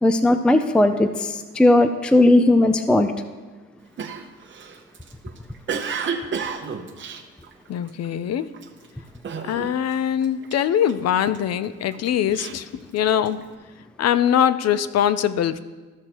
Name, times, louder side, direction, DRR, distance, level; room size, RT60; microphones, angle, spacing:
voice 1, 0.0-3.1, left 2 dB, 5° left, 9 dB, 0.4 m, -17 dB
Cough, 4.0-8.1 8.5-8.9 9.2-10.0 10.2-11.4 11.9-13.4, right 6 dB, 40° right, 0.9 m, -31 dB
voice 2, 7.7-8.5 9.4-12.7 12.9-13.4 14.0-15.6, left 9 dB, 55° left, 14 dB, 0.5 m, -22 dB
14.0 x 6.4 x 3.0 m, 1.3 s
cardioid pair, 90°, 30 cm